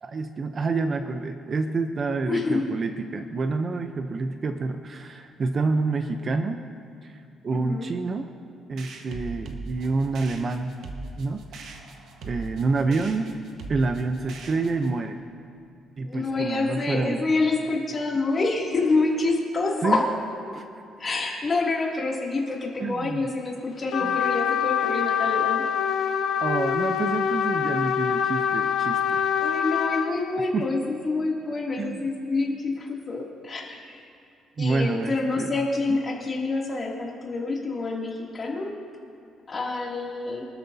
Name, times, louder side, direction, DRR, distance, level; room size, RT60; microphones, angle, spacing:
voice 1, 0.0-6.6 7.0-8.3 8.7-10.8 11.2-11.6 12.2-13.4 13.7-15.2 16.0-17.2 19.8-20.0 20.5-20.6 22.8-23.2 24.0-24.2 26.4-29.3 30.5-30.7 31.8-32.0 34.6-35.5 35.9-36.0, right 3 dB, 35° right, 7 dB, 0.6 m, -28 dB
voice 2, 2.3-2.7 7.5-7.9 12.9-13.0 16.0-20.1 21.0-25.7 29.4-34.0 34.6-38.8 39.5-40.5, left 3 dB, 30° left, -2 dB, 2.6 m, -27 dB
sound 1, 8.8-15.0, right 3 dB, 70° right, 1.3 m, -40 dB
Trumpet, 23.9-30.1, left 8 dB, 65° left, 0.8 m, -25 dB
24.0 x 13.0 x 2.8 m, 2.5 s
cardioid pair, 135°, 0 cm